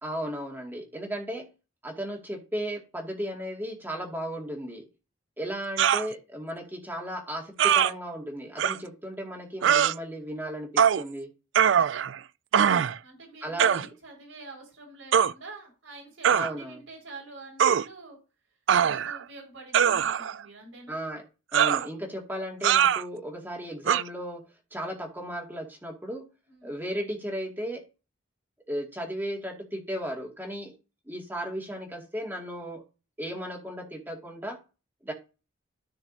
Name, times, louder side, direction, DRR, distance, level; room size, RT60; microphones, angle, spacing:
voice 1, 0.0-1.5 1.8-4.9 5.4-11.3 13.4-13.9 16.3-16.8 20.9-21.3 21.5-24.4 24.7-26.3 26.6-27.8 28.7-30.7 31.1-32.8 33.2-34.6 35.0-35.1, equal, 10° right, 0 dB, 2.2 m, -35 dB
sound 1, 5.8-6.1 7.6-7.9 8.6-8.8 9.6-9.9 10.8-11.0 11.5-12.2 12.5-13.0 13.6-13.9 15.1-15.3 16.2-16.5 17.6-17.8 18.7-19.2 19.7-20.4 21.5-21.9 22.6-23.0 23.9-24.0, right 8 dB, 65° right, 0.4 m, -22 dB
voice 2, 12.6-18.2 18.8-21.0 26.5-26.7, right 3 dB, 80° right, 1 dB, 5.1 m, -47 dB
13.5 x 6.2 x 2.7 m, 0.31 s
head